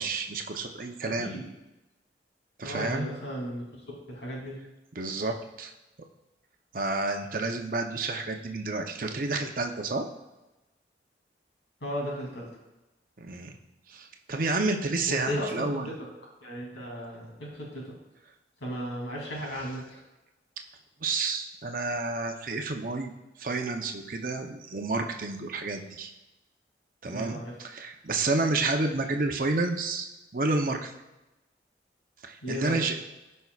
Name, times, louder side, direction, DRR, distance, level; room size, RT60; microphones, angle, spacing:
voice 1, 0.0-1.3 2.6-3.1 5.0-5.7 6.7-10.0 13.2-13.6 13.9-15.9 21.0-23.1 23.4-26.1 27.0-30.1 30.3-30.9 32.2-33.0, right 3 dB, 50° right, 4 dB, 0.7 m, -30 dB
voice 2, 2.6-3.8 4.1-4.6 11.8-12.5 15.1-16.0 16.4-17.9 18.6-20.0 27.0-27.5 32.4-32.8, equal, 85° left, -3 dB, 2.9 m, -35 dB
13.5 x 5.5 x 2.4 m, 1.0 s
head